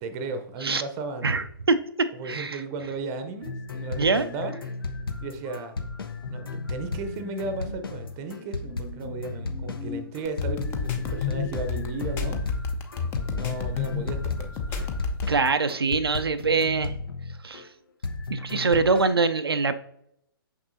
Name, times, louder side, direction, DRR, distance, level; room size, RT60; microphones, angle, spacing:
voice 1, 0.0-1.3 2.1-4.6 5.2-5.8 6.3-12.4 13.3-14.9, right 3 dB, 25° right, 8 dB, 0.7 m, -35 dB
voice 2, 1.2-2.6 4.0-4.2 15.3-16.9 17.4-17.7 18.3-19.7, right 4 dB, 80° right, 9 dB, 0.4 m, -24 dB
sound 1, 3.4-17.6 18.0-19.1, left 3 dB, 70° left, 0.9 m, -35 dB
sound 2, 6.2-12.2, left 6 dB, 35° left, 1.0 m, -43 dB
sound 3, 10.2-15.4, left 5 dB, 20° left, 0.6 m, -30 dB
6.1 x 5.9 x 2.7 m, 0.75 s
figure-of-eight pair, 125°, 13 cm